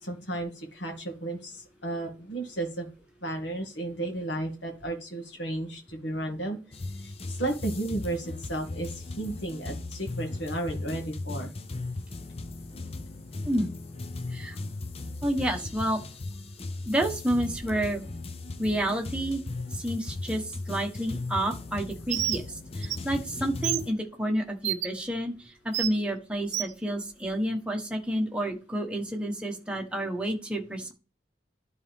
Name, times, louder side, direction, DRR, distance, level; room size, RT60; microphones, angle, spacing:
voice 1, 0.0-2.9 3.2-6.6 7.0-11.5, right 2 dB, 70° left, 2 dB, 2.1 m, -33 dB
sound 1, 6.7-23.9, left 2 dB, 30° left, 0.5 m, -37 dB
voice 2, 15.2-16.0 16.8-18.0 18.6-19.4 19.8-30.9, right 1 dB, 5° right, 1 dB, 1.2 m, -30 dB
Bird, 22.1-22.4 22.8-23.0 23.6-23.8 24.6-24.9 25.7-25.9 26.5-26.7, right 13 dB, 70° right, 0.6 m, -28 dB
12.0 x 4.1 x 3.6 m, 0.33 s
head